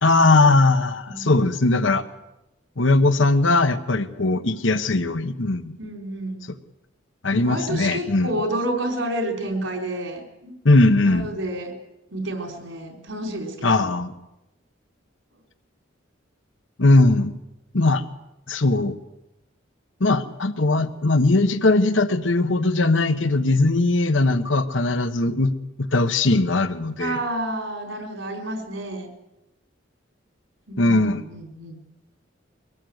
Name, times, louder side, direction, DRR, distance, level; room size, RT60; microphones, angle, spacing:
voice 1, 0.0-2.0 2.8-5.7 7.2-8.3 10.6-11.3 13.6-14.1 16.8-17.3 17.7-18.0 18.5-19.0 20.0-25.5 25.8-27.2 30.8-31.2, left 2 dB, 80° left, 11 dB, 1.2 m, -19 dB
voice 2, 5.8-6.4 7.3-10.6 11.0-11.8 12.1-13.9 27.0-29.1 30.7-31.8, right 1 dB, 85° right, 4 dB, 4.4 m, -30 dB
23.5 x 18.0 x 8.0 m, 0.96 s
head